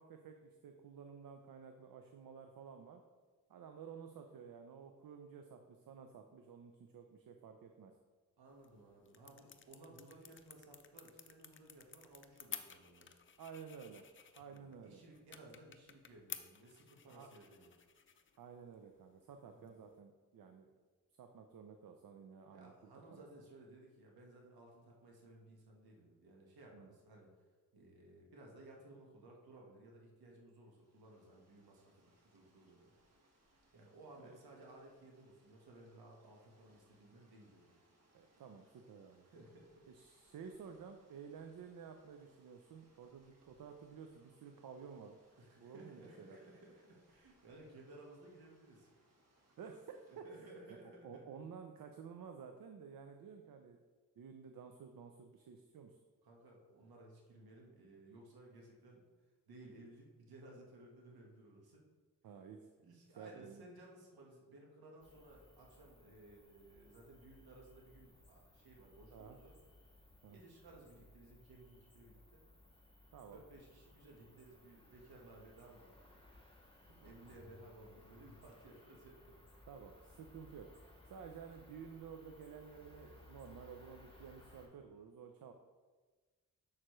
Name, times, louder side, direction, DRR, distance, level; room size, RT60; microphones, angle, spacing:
voice 1, 0.0-3.0 3.5-7.9 13.4-14.1 14.3-15.0 17.1-17.3 18.4-20.7 21.2-22.7 23.1-23.2 26.7-26.9 34.2-34.3 38.1-39.3 39.9-45.2 45.6-46.4 49.6-50.5 51.0-53.8 54.2-56.0 62.2-62.7 63.2-63.7 69.1-69.4 70.2-70.4 73.1-73.4 76.9-77.1 79.7-85.5, right 6 dB, 65° right, 5 dB, 0.6 m, -53 dB
voice 2, 8.4-13.1 14.5-17.7 19.5-19.8 22.5-27.5 27.7-32.9 33.7-37.8 39.2-39.9 40.1-40.4 45.4-48.9 50.1-51.3 56.2-59.0 59.5-61.9 62.8-69.6 70.3-72.4 73.3-76.0 77.0-79.4, right 2 dB, 85° right, -1 dB, 1.4 m, -58 dB
sound 1, 8.5-20.0, left 6 dB, 35° left, 0.6 m, -54 dB
sound 2, 30.6-50.2, right 1 dB, 45° right, 1.6 m, -73 dB
Cricket, 65.0-84.7, left 2 dB, 15° left, 1.7 m, -62 dB
7.3 x 6.5 x 3.1 m, 1.4 s
cardioid pair, 65°, 36 cm